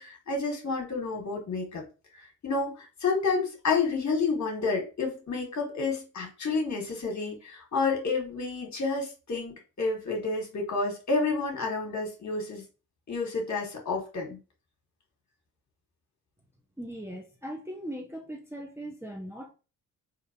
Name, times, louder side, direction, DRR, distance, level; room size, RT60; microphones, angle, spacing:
voice 1, 0.0-1.8 2.4-12.6 13.1-14.4, left 4 dB, 40° left, 1.7 m, -30 dB
voice 2, 16.8-19.5, equal, 5° right, 1.0 m, -39 dB
3.7 x 3.1 x 2.8 m
hypercardioid pair, 40°, 45 cm